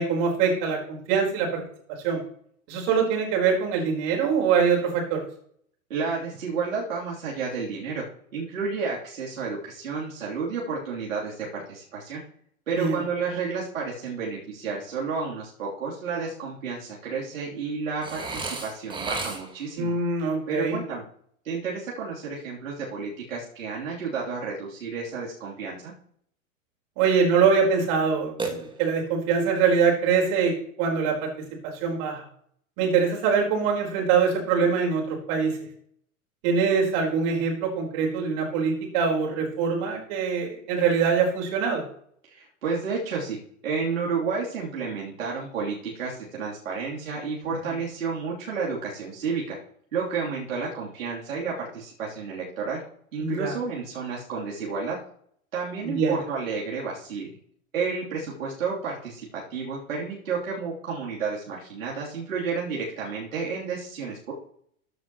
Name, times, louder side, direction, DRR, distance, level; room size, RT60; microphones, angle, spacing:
voice 1, 0.0-1.6 2.0-2.2 2.7-5.2 12.8-13.0 19.8-20.8 27.0-31.3 31.8-32.2 32.8-35.6 36.4-41.8 47.4-47.5 53.2-53.5 55.8-56.1, right 6 dB, 45° right, 0 dB, 4.4 m, -23 dB
voice 2, 5.9-8.0 8.3-12.2 12.7-19.9 20.5-21.0 21.4-25.9 42.2-43.4 43.6-49.6 49.9-52.8 53.1-55.0 55.5-57.3 57.7-64.3, right 5 dB, 70° right, -5 dB, 3.2 m, -31 dB
Burping eructation, 18.0-19.7 28.4-29.2, right 3 dB, 10° right, 1.8 m, -33 dB
14.0 x 9.3 x 3.0 m, 0.62 s
figure-of-eight pair, 100°, 42 cm